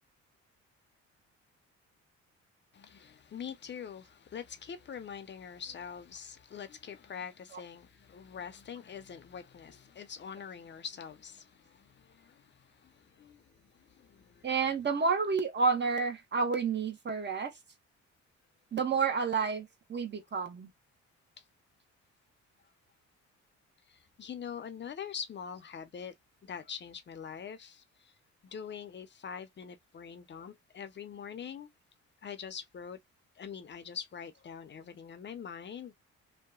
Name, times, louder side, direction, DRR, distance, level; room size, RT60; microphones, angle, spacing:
voice 1, 2.7-13.4 13.8-14.5 24.2-26.1 26.4-27.8 28.4-31.7 32.2-33.0 33.4-35.9, left 7 dB, 35° left, 0.7 m, -44 dB
voice 2, 14.4-17.5 18.7-20.7, right 5 dB, 35° right, 1.0 m, -30 dB
2.8 x 2.2 x 2.3 m
cardioid pair, 90°, 30 cm